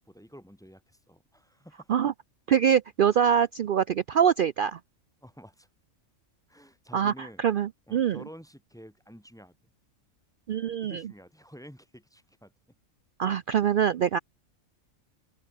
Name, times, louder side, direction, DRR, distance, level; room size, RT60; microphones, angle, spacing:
voice 1, 0.0-2.1 5.2-5.7 6.5-7.4 7.9-9.6 10.8-12.5, equal, 5° left, 1.8 m, -49 dB
voice 2, 2.5-4.8 6.9-8.2 10.5-11.0 13.2-14.2, right 8 dB, 70° right, 0.5 m, -24 dB
open air
omnidirectional pair, 1.4 m